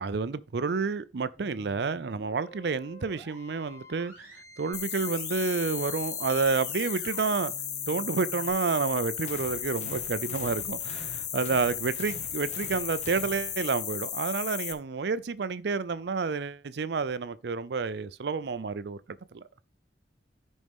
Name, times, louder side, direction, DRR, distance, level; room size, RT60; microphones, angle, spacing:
voice 1, 0.0-4.3 4.6-7.5 7.9-19.0 19.3-19.4, right 4 dB, 65° right, 0.5 m, -30 dB
sound 1, 1.4-8.5, left 1 dB, 10° right, 4.1 m, -50 dB
sound 2, 4.7-14.7, left 9 dB, 65° left, 1.2 m, -35 dB
sound 3, 9.2-13.9, left 1 dB, 40° left, 1.6 m, -47 dB
12.5 x 5.4 x 3.6 m
head